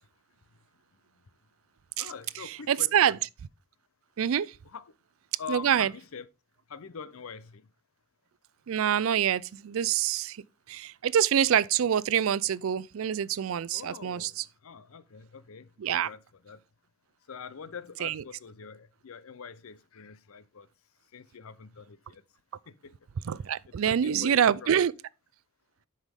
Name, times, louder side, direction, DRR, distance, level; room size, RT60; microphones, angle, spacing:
voice 1, 2.0-3.2 4.6-4.9 5.4-6.3 6.7-7.7 13.7-16.6 17.3-20.7 21.1-22.2 22.7-22.9 23.8-24.8, left 6 dB, 80° left, 0.6 m, -44 dB
voice 2, 2.7-3.2 4.2-4.5 5.5-5.9 8.7-10.4 10.7-14.4 15.8-16.1 18.0-18.2 23.3-24.9, right 9 dB, 75° right, 0.4 m, -26 dB
8.1 x 5.7 x 3.5 m
head